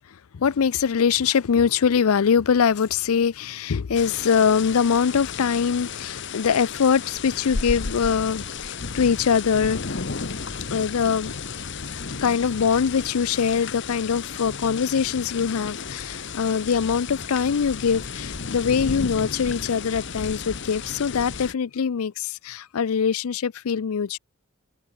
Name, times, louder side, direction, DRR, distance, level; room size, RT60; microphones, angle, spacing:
voice 1, 0.3-10.0 10.7-11.3 11.9-24.2, left 6 dB, 75° left, 0.5 m, -23 dB
sound 1, 3.9-21.5, left 5 dB, 55° left, 1.0 m, -33 dB
head